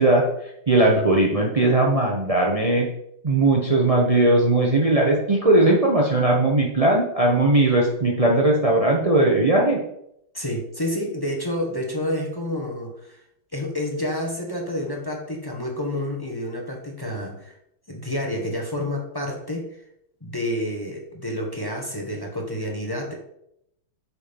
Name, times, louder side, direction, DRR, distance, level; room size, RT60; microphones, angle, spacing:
voice 1, 0.0-2.9 3.2-9.8, right 2 dB, 65° right, -1 dB, 0.3 m, -19 dB
voice 2, 10.3-13.2 13.5-17.5 17.9-19.7 20.2-23.1, left 1 dB, 15° left, -1 dB, 1.0 m, -29 dB
8.4 x 4.6 x 5.3 m, 0.77 s
omnidirectional pair, 2.4 m